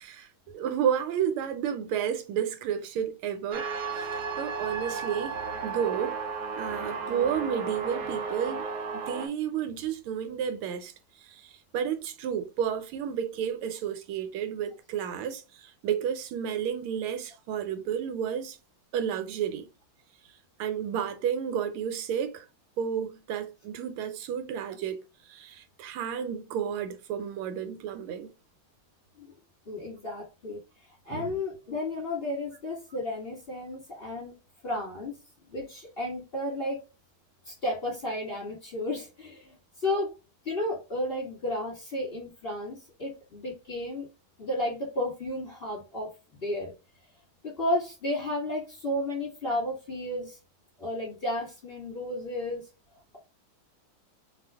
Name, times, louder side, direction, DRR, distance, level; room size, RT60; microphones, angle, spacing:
voice 1, 0.0-3.7 3.9-4.1 4.4-5.3 5.6-6.2 6.6-8.7 8.9-10.9 11.3-18.6 18.9-19.7 20.6-22.4 22.8-25.0 25.3-28.3 31.1-31.4, right 8 dB, 85° right, 1.5 m, -31 dB
sound 1, 3.5-9.3, right 4 dB, 70° right, 1.0 m, -34 dB
voice 2, 29.7-30.6 31.0-34.4 34.6-35.2 35.5-36.8 37.4-39.6 39.8-40.1 40.4-44.1 44.4-46.1 46.4-46.7 47.4-50.4 50.8-52.6, left 1 dB, 30° left, 1.4 m, -32 dB
3.2 x 2.4 x 3.3 m
omnidirectional pair, 2.3 m